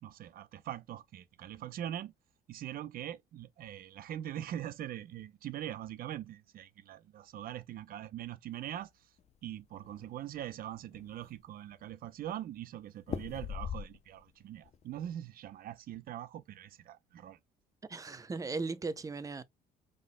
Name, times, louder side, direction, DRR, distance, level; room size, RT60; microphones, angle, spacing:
voice 1, 0.0-2.1 2.5-9.1 9.4-17.4, right 11 dB, 60° right, 0.7 m, -42 dB
sound 1, 9.2-10.1 10.6-10.7 10.9-11.6 13.0-14.3 14.6-15.1, left 8 dB, 40° left, 0.6 m, -40 dB
voice 2, 17.9-19.4, right 3 dB, 20° right, 0.7 m, -37 dB
5.4 x 4.0 x 2.2 m
cardioid pair, 110°, 17 cm